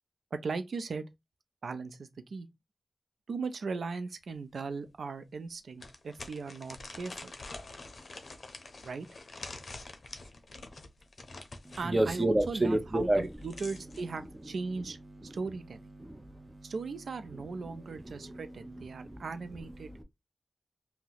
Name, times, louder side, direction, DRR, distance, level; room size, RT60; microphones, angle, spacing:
voice 1, 0.3-1.1 1.6-2.5 3.3-7.3 8.8-9.1 11.8-15.0 15.2-15.8 16.6-19.9, right 4 dB, 85° right, 0.4 m, -38 dB
sound 1, 4.3-4.4 4.9-5.0 5.8-11.9 13.1-14.0, left 3 dB, 65° left, 0.6 m, -46 dB
voice 2, 11.7-13.3 15.2-15.3 16.0-16.7 17.4-19.2 19.8-20.0, right 1 dB, 25° right, 0.6 m, -31 dB
2.8 x 2.0 x 3.9 m
cardioid pair, 60°, 0 cm